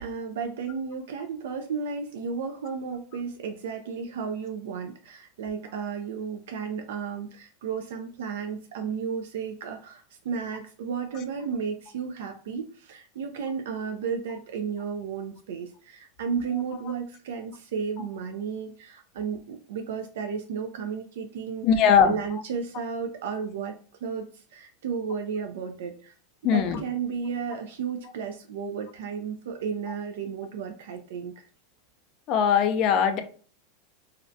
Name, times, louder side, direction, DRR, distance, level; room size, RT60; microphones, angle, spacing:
voice 1, 0.0-26.1 26.4-31.3, right 6 dB, 85° right, 4 dB, 0.3 m, -33 dB
voice 2, 21.6-22.1 26.4-26.8 32.3-33.2, left 7 dB, 40° left, 7 dB, 0.3 m, -20 dB
2.4 x 2.1 x 2.5 m, 0.42 s
supercardioid pair, 155°, 0 cm